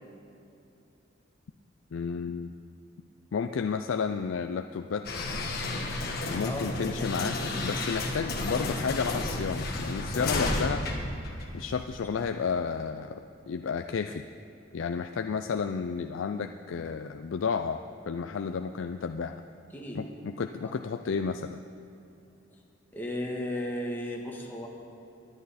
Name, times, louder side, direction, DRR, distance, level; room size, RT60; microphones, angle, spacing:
voice 1, 1.9-2.5 3.3-5.1 6.3-10.8 11.5-14.2 14.7-19.4 19.9-21.6, left 5 dB, 75° left, 7 dB, 0.4 m, -32 dB
sound 1, 5.0-12.0, left 2 dB, 50° left, 1.5 m, -32 dB
voice 2, 6.4-7.0 19.7-20.0 20.6-20.7 22.9-24.7, left 1 dB, 10° left, -2 dB, 1.5 m, -35 dB
19.0 x 10.5 x 4.2 m, 2.7 s
head